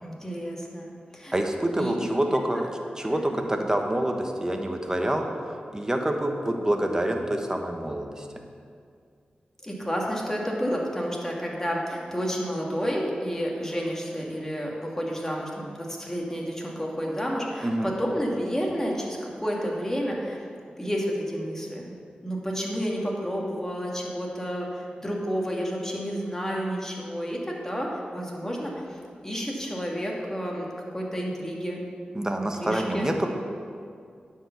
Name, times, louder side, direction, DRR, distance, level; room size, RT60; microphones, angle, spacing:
voice 1, 0.0-1.3 1.7-2.0 3.0-3.4 9.6-20.4 20.8-21.9 22.2-28.8 29.2-31.8 32.4-33.1, equal, 15° left, -2 dB, 2.0 m, -30 dB
voice 2, 1.3-2.7 2.9-8.3 17.6-17.9 32.1-33.3, right 1 dB, 20° right, 3 dB, 1.1 m, -27 dB
9.8 x 4.8 x 7.1 m, 2.3 s
cardioid pair, 55°, 3 cm